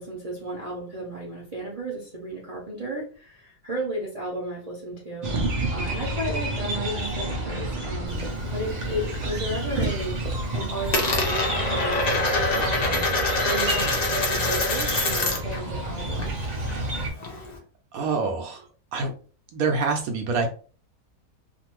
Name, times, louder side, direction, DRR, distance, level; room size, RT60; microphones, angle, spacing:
voice 1, 0.0-5.3 5.7-10.2 10.5-13.1 13.5-16.3, right 1 dB, 35° right, -5 dB, 0.6 m, -33 dB
sound 1, 5.2-17.1, right 1 dB, 90° right, 0.3 m, -29 dB
Coin (dropping), 8.1-9.2 9.5-10.0 10.3-15.6 15.9-17.6, left 2 dB, 60° left, 0.4 m, -26 dB
voice 2, 17.9-19.1 19.5-20.5, right 4 dB, 75° right, 3 dB, 1.0 m, -26 dB
2.5 x 2.5 x 2.9 m, 0.40 s
omnidirectional pair, 1.6 m